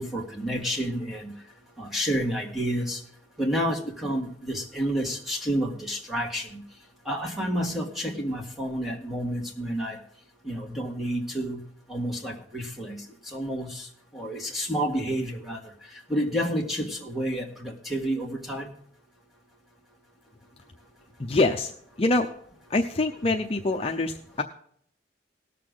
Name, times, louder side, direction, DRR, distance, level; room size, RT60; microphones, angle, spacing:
voice 1, 0.0-1.3 1.8-3.0 3.4-6.6 7.1-10.0 10.4-11.6 11.9-13.9 14.1-15.6 16.1-18.7, equal, ahead, -1 dB, 1.8 m, -30 dB
voice 2, 21.2-22.3 22.7-24.4, left 2 dB, 30° left, 3 dB, 0.7 m, -25 dB
19.0 x 6.7 x 3.8 m, 0.63 s
head